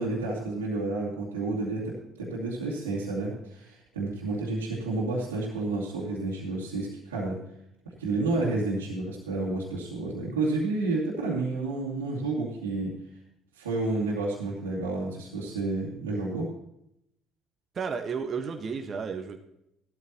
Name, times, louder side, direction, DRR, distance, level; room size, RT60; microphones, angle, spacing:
voice 1, 0.0-7.4 7.8-13.0 13.5-16.5, right 2 dB, 85° right, -6 dB, 2.5 m, -30 dB
voice 2, 17.7-19.4, right 5 dB, 40° right, 4 dB, 1.4 m, -32 dB
15.0 x 13.0 x 3.0 m, 0.79 s
hypercardioid pair, 55°, 0 cm